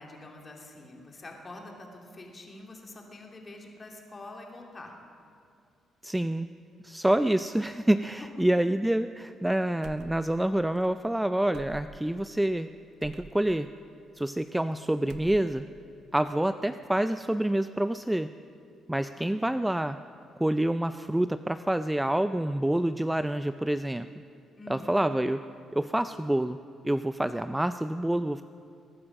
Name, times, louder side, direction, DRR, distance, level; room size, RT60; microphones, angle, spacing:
voice 1, 0.0-4.9 8.2-8.3 19.1-19.5 24.6-25.0, left 2 dB, 30° left, 0 dB, 2.8 m, -46 dB
voice 2, 6.0-6.5 6.8-12.7 13.0-13.7 14.2-15.6 16.1-18.3 18.9-20.0 20.4-24.1 24.7-25.4 25.7-26.6 26.8-28.4, right 1 dB, 10° right, 11 dB, 0.3 m, -27 dB
sound 1, 9.8-10.5 10.7-10.9 11.5-12.2 13.0-13.3 14.2-14.7 15.0-15.7, right 7 dB, 80° right, 0.8 m, -47 dB
21.5 x 9.8 x 6.3 m, 2.4 s
cardioid pair, 90°, 0 cm